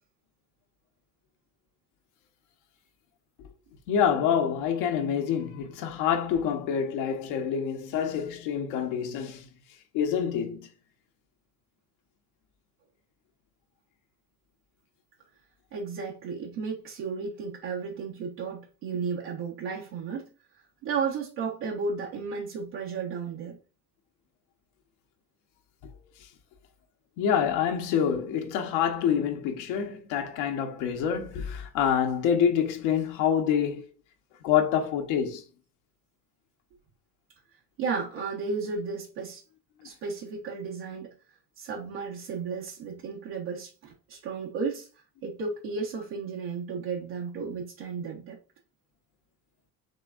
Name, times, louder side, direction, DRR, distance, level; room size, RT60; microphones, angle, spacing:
voice 1, 3.9-9.5 9.9-10.7 27.2-33.8 34.4-35.4, left 8 dB, 65° left, 1.1 m, -26 dB
voice 2, 15.7-20.3 20.8-23.6 37.8-39.4 39.8-41.1 41.6-44.9 45.2-48.4, right 5 dB, 65° right, 1.5 m, -33 dB
6.6 x 3.2 x 2.5 m
hypercardioid pair, 60°, 50 cm